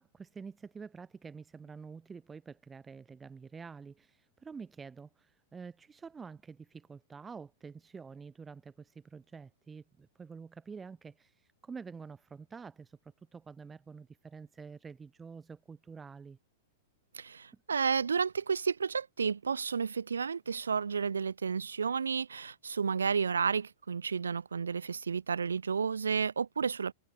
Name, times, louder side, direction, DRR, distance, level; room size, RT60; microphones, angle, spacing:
voice 1, 0.0-16.4 17.5-17.6, right 5 dB, 15° right, 1.8 m, -48 dB
voice 2, 17.1-26.9, right 6 dB, 80° right, 0.9 m, -31 dB
figure-of-eight pair, 100°, 0 cm